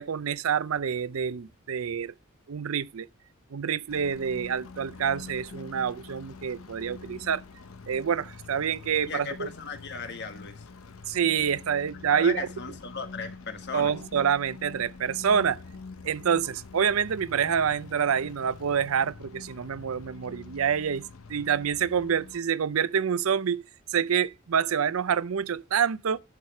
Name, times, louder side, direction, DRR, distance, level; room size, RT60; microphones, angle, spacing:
voice 1, 0.0-2.1 2.5-3.1 3.5-7.4 7.9-9.5 11.1-12.5 13.7-15.6 16.0-21.0 21.3-23.6 23.9-26.2, right 7 dB, 85° right, 0.5 m, -27 dB
sound 1, 3.9-22.4, left 4 dB, 85° left, 0.7 m, -45 dB
voice 2, 9.1-10.6 12.1-13.9, left 4 dB, 55° left, 1.6 m, -37 dB
11.5 x 4.8 x 5.8 m
head